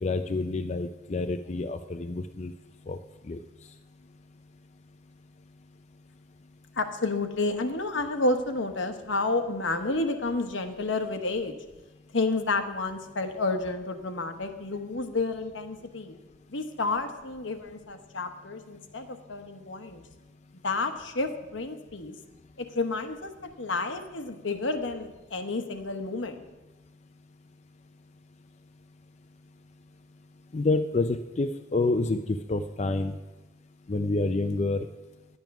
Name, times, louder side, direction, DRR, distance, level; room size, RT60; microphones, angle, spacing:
voice 1, 0.0-2.5 2.9-3.0 3.3-3.4 30.5-33.1 33.9-34.9, left 2 dB, 35° left, 8 dB, 0.4 m, -28 dB
voice 2, 6.7-11.6 12.1-16.1 16.5-20.0 20.6-22.2 22.6-26.5, left 3 dB, 80° left, 7 dB, 1.0 m, -30 dB
10.5 x 9.1 x 5.9 m, 1.1 s
head